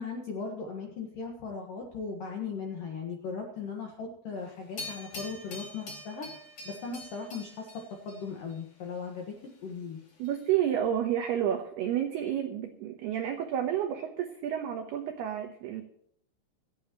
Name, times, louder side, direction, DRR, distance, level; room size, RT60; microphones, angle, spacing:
voice 1, 0.0-6.3 6.6-7.7 8.0-9.3 9.6-10.0, left 5 dB, 65° left, 1 dB, 2.2 m, -38 dB
sound 1, 4.8-8.6 10.2-10.3, left 1 dB, 35° left, 2.7 m, -44 dB
voice 2, 10.2-15.8, right 10 dB, 75° right, 4 dB, 2.4 m, -30 dB
27.0 x 9.5 x 3.1 m, 0.68 s
omnidirectional pair, 6.0 m